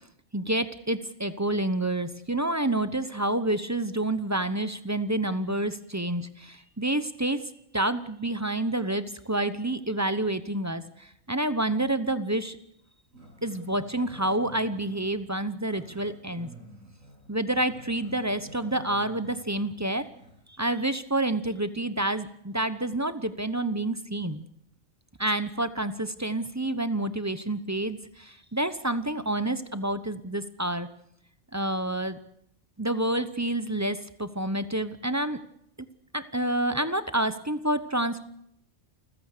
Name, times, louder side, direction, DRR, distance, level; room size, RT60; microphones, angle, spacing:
voice 1, 0.3-7.4 7.7-12.6 13.4-16.5 17.3-20.1 20.6-24.4 25.2-30.9 31.5-32.2 32.8-35.4 36.1-38.2, right 1 dB, 15° right, 12 dB, 0.8 m, -28 dB
Growling, 13.1-20.4, right 1 dB, 85° right, 8.6 m, -49 dB
28.5 x 15.0 x 6.7 m, 0.73 s
omnidirectional pair, 1.3 m